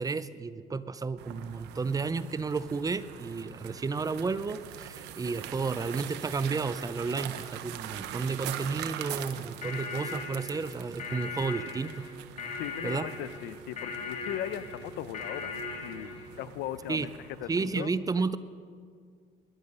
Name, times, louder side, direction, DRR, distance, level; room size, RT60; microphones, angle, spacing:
voice 1, 0.0-12.1 12.8-13.1 16.9-17.1 17.5-18.4, right 4 dB, 20° right, 15 dB, 0.5 m, -32 dB
sound 1, 1.2-17.7, right 10 dB, 90° right, 0.9 m, -43 dB
sound 2, 9.4-16.3, left 4 dB, 40° left, 2.2 m, -39 dB
voice 2, 12.6-17.1 17.4-17.9, left 12 dB, 90° left, 15 dB, 0.6 m, -38 dB
21.5 x 10.5 x 5.5 m, 2.1 s
cardioid pair, 110°, 17 cm